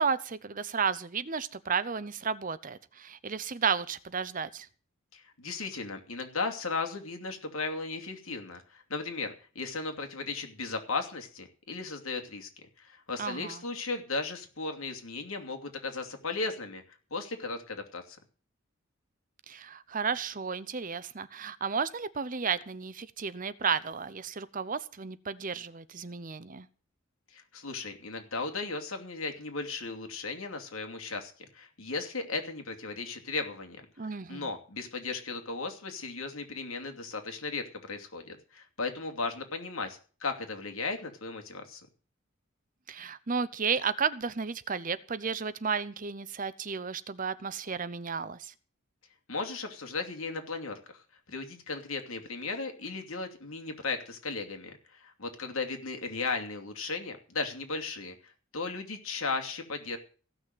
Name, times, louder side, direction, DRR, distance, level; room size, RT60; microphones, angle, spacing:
voice 1, 0.0-4.7 13.2-13.6 19.5-26.7 34.0-34.5 42.9-48.5, right 6 dB, 40° right, 0.7 m, -33 dB
voice 2, 5.1-12.5 12.8-16.8 17.1-18.2 27.3-41.8 49.3-51.0 51.3-60.0, left 3 dB, 80° left, 2.8 m, -36 dB
16.0 x 6.3 x 9.2 m
head